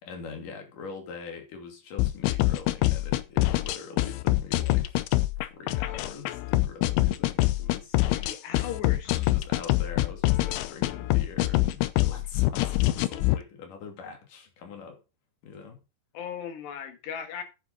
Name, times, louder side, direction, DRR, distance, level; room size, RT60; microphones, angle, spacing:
voice 1, 0.0-5.0 5.4-8.0 9.1-15.0 15.4-15.8, left 5 dB, 50° left, 3.9 m, -43 dB
sound 1, 2.0-13.4, left 17 dB, 85° left, 3.2 m, -25 dB
voice 2, 7.9-9.3 16.1-17.4, left 8 dB, 70° left, 3.7 m, -37 dB
10.0 x 8.5 x 4.1 m
omnidirectional pair, 5.4 m